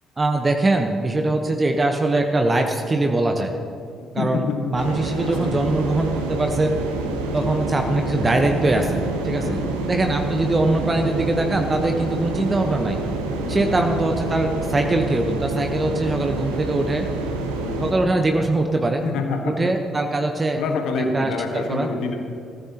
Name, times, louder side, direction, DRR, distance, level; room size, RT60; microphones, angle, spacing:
voice 1, 0.2-3.5 4.1-4.5 4.7-6.8 7.3-9.0 9.2-9.6 9.9-13.0 13.5-17.1 17.8-19.0 19.4-20.6 21.1-21.9, right 2 dB, 25° right, 4 dB, 1.1 m, -22 dB
voice 2, 4.2-4.6 5.0-5.7 7.3-7.5 9.4-9.7 13.4-13.8 17.5-17.9 19.0-19.6 20.6-22.2, left 4 dB, 60° left, 3 dB, 1.6 m, -27 dB
sound 1, 4.8-17.9, right 3 dB, 75° right, 1.2 m, -27 dB
sound 2, 8.2-17.3 17.6-17.7, left 2 dB, 30° left, 4.2 m, -38 dB
20.5 x 15.0 x 3.0 m, 2.5 s
figure-of-eight pair, 45°, 0 cm